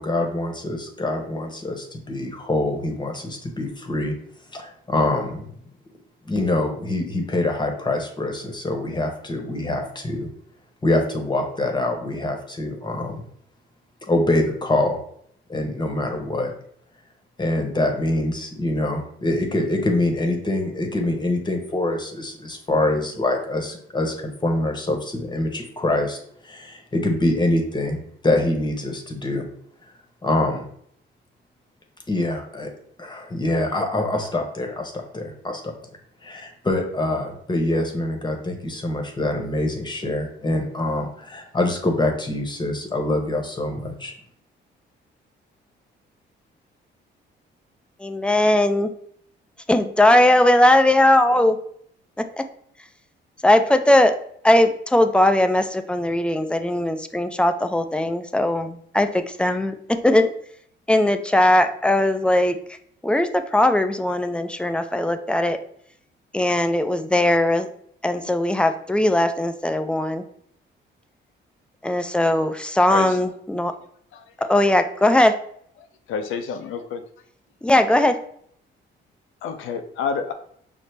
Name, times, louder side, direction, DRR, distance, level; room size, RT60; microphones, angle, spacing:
voice 1, 0.0-4.1 4.5-5.5 6.2-10.3 10.8-13.2 14.1-15.0 15.5-16.5 17.4-26.2 26.4-29.5 30.2-30.6 32.1-32.7 33.0-35.7 36.2-44.1, left 2 dB, 20° left, 3 dB, 0.9 m, -25 dB
voice 2, 48.0-48.9 49.7-51.6 52.4-52.5 53.4-54.2 54.4-59.7 60.0-60.3 60.9-62.6 63.0-65.6 66.3-67.7 68.0-70.2 71.8-73.7 74.4-75.3 77.6-78.2, left 1 dB, 5° left, 8 dB, 0.3 m, -19 dB
voice 3, 76.1-77.0 79.4-80.3, left 6 dB, 80° left, 8 dB, 0.5 m, -28 dB
5.7 x 2.0 x 3.2 m, 0.66 s
cardioid pair, 90°, 20 cm